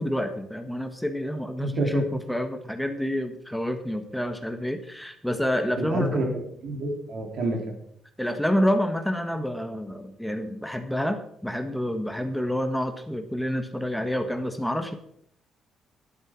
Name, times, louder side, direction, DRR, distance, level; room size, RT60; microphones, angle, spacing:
voice 1, 0.0-6.2 8.2-15.0, equal, 5° left, 6 dB, 1.5 m, -28 dB
voice 2, 1.6-2.1 5.8-7.8, right 1 dB, 70° right, 2 dB, 3.8 m, -28 dB
11.5 x 9.0 x 6.2 m, 0.69 s
cardioid pair, 90°, 0 cm